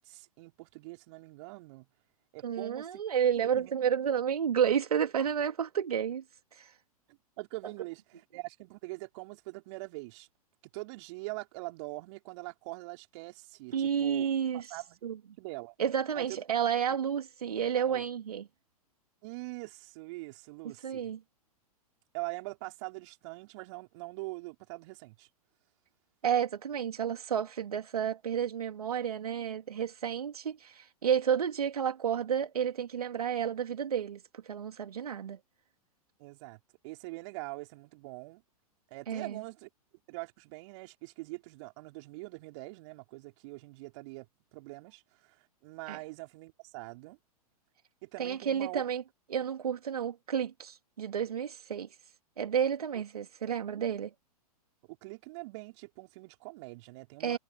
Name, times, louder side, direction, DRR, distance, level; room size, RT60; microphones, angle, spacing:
voice 1, 0.0-1.9 2.3-3.0 3.5-3.7 7.1-10.3 10.6-14.3 14.5-15.0 15.4-15.7 16.1-16.4 17.8-18.1 19.2-21.1 22.1-25.3 36.2-36.6 36.8-38.4 38.9-39.7 40.1-47.2 48.0-48.8 54.9-57.4, right 24 dB, 50° right, 3.7 m, -43 dB
voice 2, 2.4-6.2 6.5-6.7 13.7-14.8 15.0-15.2 15.8-18.5 20.8-21.2 26.2-35.4 39.1-39.4 45.9-46.0 48.2-49.0 49.3-51.9 52.4-54.1 57.2-57.4, right 8 dB, 75° right, 2.5 m, -31 dB
figure-of-eight pair, 105°, 20 cm